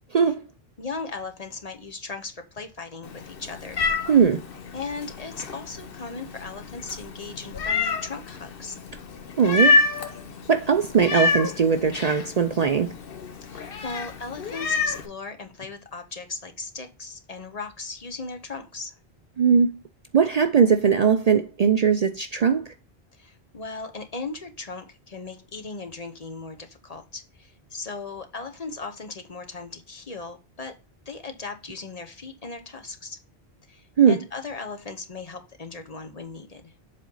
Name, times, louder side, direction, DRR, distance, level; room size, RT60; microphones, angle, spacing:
voice 1, 0.8-3.8 4.7-8.8 13.4-18.9 23.2-30.7 31.1-33.2 33.7-36.7, left 4 dB, 40° left, 0.8 m, -37 dB
Meow, 3.0-15.1, left 3 dB, 60° left, 1.0 m, -28 dB
voice 2, 4.1-4.4 9.4-9.8 10.5-12.9 19.4-19.7 20.1-22.7 34.0-34.2, right 6 dB, 50° right, 0.5 m, -20 dB
7.6 x 4.1 x 3.8 m
omnidirectional pair, 1.1 m